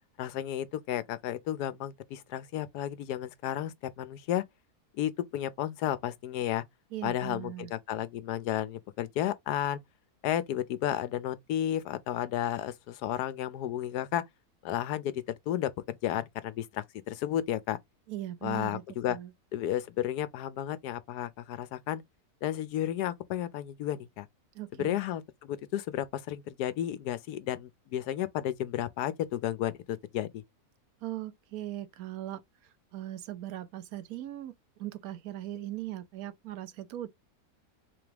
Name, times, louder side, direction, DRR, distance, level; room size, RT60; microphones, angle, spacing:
voice 1, 0.2-4.4 5.0-6.6 7.0-9.8 10.2-14.2 14.6-17.8 18.4-19.2 19.5-22.0 22.4-24.3 24.7-30.4, left 11 dB, 85° left, 1.2 m, -32 dB
voice 2, 6.9-7.7 18.1-18.8 19.1-19.3 24.5-25.0 31.0-32.4 32.9-34.5 34.8-37.1, right 13 dB, 70° right, 1.1 m, -39 dB
3.8 x 3.4 x 3.3 m
omnidirectional pair, 1.7 m